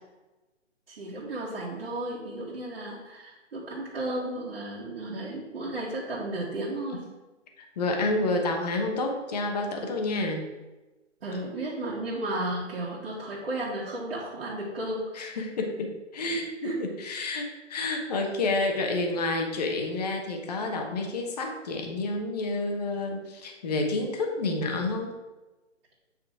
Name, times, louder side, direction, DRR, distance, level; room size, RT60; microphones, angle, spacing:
voice 1, 0.9-7.1 11.2-15.1 16.6-16.8, right 1 dB, 55° right, -7 dB, 2.1 m, -33 dB
voice 2, 7.6-10.5 15.1-25.1, left 2 dB, 35° left, 2 dB, 1.1 m, -29 dB
8.8 x 4.3 x 5.0 m, 1.1 s
hypercardioid pair, 160°, 36 cm